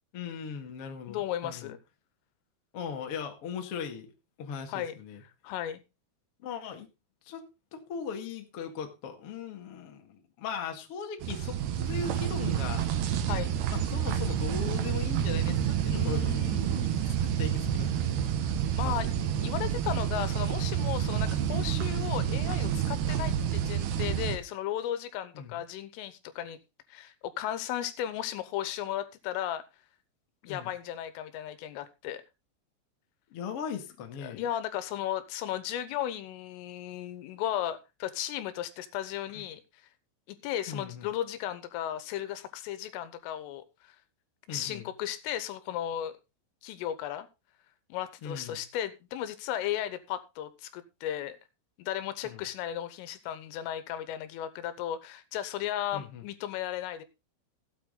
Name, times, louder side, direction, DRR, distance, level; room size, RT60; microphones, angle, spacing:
voice 1, 0.1-1.7 2.7-4.1 4.4-5.2 6.4-6.9 7.2-7.4 7.7-12.9 13.7-16.4 16.8-18.3 18.8-19.0 23.2-23.4 25.3-25.6 30.4-30.7 33.3-34.5 39.3-39.4 40.7-41.1 44.5-44.9 48.2-48.6 52.2-52.4 55.9-56.2, left 6 dB, 60° left, 4 dB, 1.5 m, -39 dB
voice 2, 1.1-1.8 4.7-5.0 5.4-5.8 13.3-13.5 15.9-17.1 18.4-26.6 26.9-29.6 30.4-32.2 34.2-39.6 40.3-43.6 44.5-46.1 46.6-47.3 47.9-51.4 51.8-57.0, left 11 dB, 85° left, 12 dB, 3.6 m, -35 dB
sound 1, 11.2-24.4, right 9 dB, 65° right, 2.8 m, -29 dB
15.5 x 8.7 x 3.9 m, 0.27 s
omnidirectional pair, 5.8 m